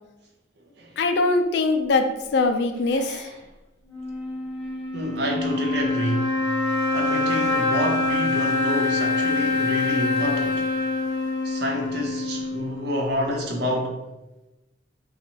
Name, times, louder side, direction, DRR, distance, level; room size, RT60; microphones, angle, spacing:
voice 1, 1.0-3.3, left 3 dB, 60° left, 6 dB, 0.3 m, -22 dB
voice 2, 2.9-3.3 4.9-6.3 6.9-10.7 11.4-14.0, equal, 60° right, 1 dB, 0.6 m, -28 dB
sound 1, 3.8-13.3, left 2 dB, 30° left, 1.1 m, -25 dB
4.0 x 2.3 x 2.9 m, 1.0 s
head